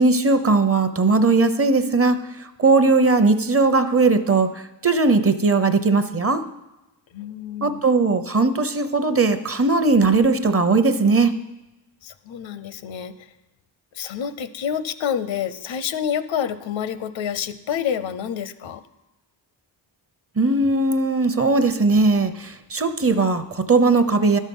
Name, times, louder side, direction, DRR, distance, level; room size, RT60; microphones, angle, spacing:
voice 1, 0.0-2.2 2.6-4.5 4.8-6.4 7.6-11.3 20.4-24.4, right 3 dB, 30° right, 10 dB, 0.8 m, -18 dB
voice 2, 7.1-7.8 12.0-13.1 14.0-18.8, left 8 dB, 80° left, 13 dB, 0.8 m, -28 dB
12.0 x 6.4 x 5.5 m, 1.0 s
cardioid pair, 80°, 45 cm